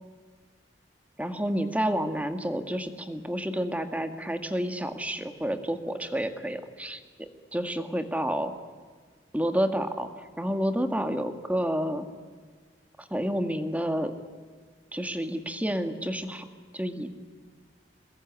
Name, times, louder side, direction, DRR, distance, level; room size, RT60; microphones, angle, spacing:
voice 1, 1.2-8.5 9.3-12.1 13.0-14.1 14.9-16.5 16.7-17.1, equal, 10° right, 7 dB, 1.9 m, -30 dB
27.0 x 21.5 x 9.8 m, 1.5 s
head